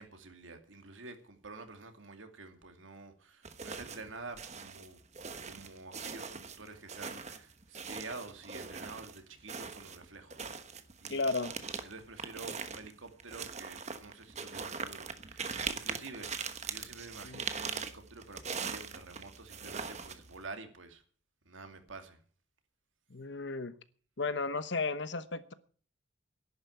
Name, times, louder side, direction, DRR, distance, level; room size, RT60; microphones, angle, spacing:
voice 1, 0.0-5.0 5.4-10.5 11.0-11.2 11.8-21.0 21.5-22.2, right 3 dB, 85° right, 6 dB, 2.4 m, -48 dB
sound 1, 3.4-4.1 4.4-9.2 9.5-20.4, right 5 dB, 35° right, 1.2 m, -41 dB
voice 2, 11.1-11.5 17.2-17.5 23.1-23.7 24.2-25.5, left 3 dB, 65° left, 13 dB, 1.1 m, -34 dB
11.0 x 9.7 x 8.6 m, 0.44 s
head